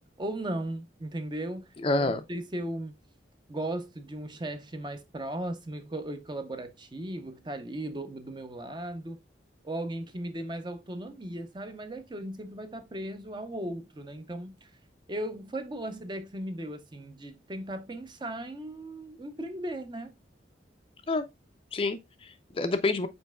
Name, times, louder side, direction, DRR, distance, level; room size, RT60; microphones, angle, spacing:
voice 1, 0.2-1.7 2.0-2.9 3.5-9.2 9.6-14.7 15.1-20.1, right 1 dB, 25° right, 0.6 m, -37 dB
voice 2, 1.8-2.2 21.1-21.2 21.7-23.1, left 3 dB, 30° left, 0.4 m, -28 dB
5.3 x 4.3 x 2.2 m
head